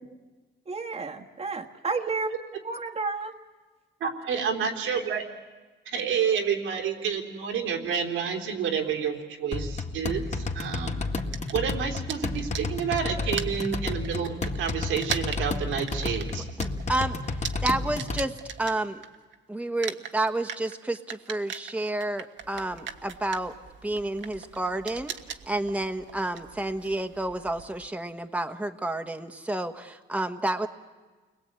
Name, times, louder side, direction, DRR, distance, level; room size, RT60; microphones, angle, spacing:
voice 1, 0.7-2.3 2.6-3.3, right 4 dB, 30° right, 2 dB, 1.5 m, -31 dB
voice 2, 4.0-5.2 5.9-11.1 11.5-16.5, right 7 dB, 90° right, 3 dB, 3.7 m, -29 dB
sound 1, 9.5-18.2, left 3 dB, 35° left, 2.1 m, -31 dB
sound 2, 11.2-19.3 19.6-27.9, right 8 dB, 65° right, 1.4 m, -39 dB
voice 3, 16.6-19.0 19.5-23.5 23.8-25.1 25.4-30.7, right 2 dB, 5° right, 6 dB, 1.3 m, -30 dB
29.0 x 22.0 x 9.0 m, 1.3 s
cardioid pair, 90°, 20 cm